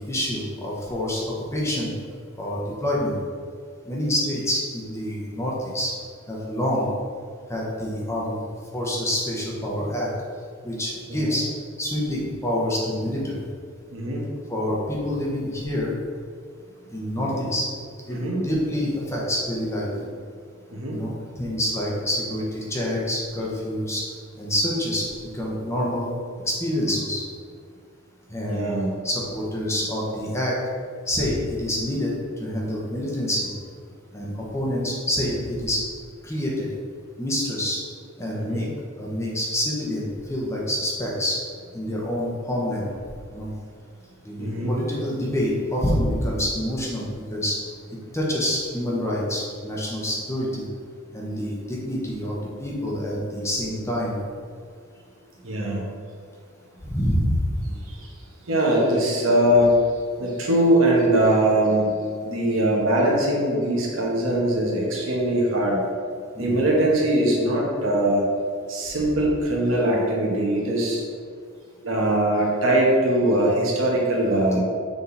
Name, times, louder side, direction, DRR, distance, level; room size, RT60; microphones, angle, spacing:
voice 1, 0.0-1.9 2.4-3.2 3.9-5.9 6.3-6.9 7.5-8.3 8.7-10.1 10.6-11.5 11.8-13.4 14.5-15.9 16.9-17.7 18.1-19.9 20.9-24.0 24.3-26.1 26.4-27.2 28.3-28.6 29.0-30.6 31.1-33.5 34.1-35.8 36.2-36.7 37.2-37.8 38.2-38.7 39.0-41.4 41.7-42.8 43.3-43.5 44.2-47.0 47.3-47.6 48.1-50.6 51.1-54.2 56.8-57.4 66.3-66.6 74.5-74.6, left 1 dB, 15° left, -4 dB, 1.0 m, -27 dB
voice 2, 13.9-14.2 17.4-17.5 18.1-18.4 19.9-20.0 20.7-21.0 28.5-28.9 38.3-38.6 44.4-44.7 55.4-55.8 57.8-58.1 58.5-59.7 60.2-61.9 62.2-65.8 66.4-68.2 68.7-71.0 71.8-74.6, right 1 dB, 80° right, -3 dB, 1.4 m, -21 dB
6.8 x 3.7 x 4.1 m, 2.1 s
head